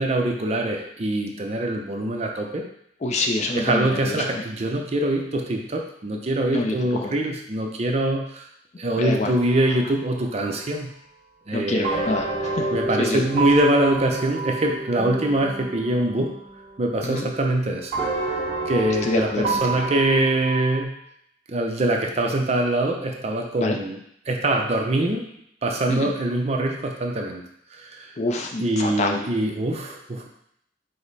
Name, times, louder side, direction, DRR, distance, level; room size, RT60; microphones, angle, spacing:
voice 1, 0.0-2.7 3.6-8.5 8.8-10.9 11.5-12.1 12.7-16.4 16.8-17.9 18.7-20.9 21.5-24.0 24.3-25.3 25.6-27.4 27.7-28.1 28.6-30.3, right 1 dB, 35° right, 2 dB, 0.5 m, -23 dB
voice 2, 3.0-4.4 6.5-7.1 9.0-9.4 9.7-9.8 11.5-12.7 13.0-13.2 17.0-17.3 19.0-19.8 23.6-23.8 25.9-26.1 28.2-29.2, left 2 dB, 40° left, 3 dB, 0.4 m, -26 dB
sound 1, 9.3-10.6 11.8-17.6 17.9-20.8, right 3 dB, 20° right, 1.7 m, -30 dB
5.0 x 2.0 x 4.0 m, 0.71 s
head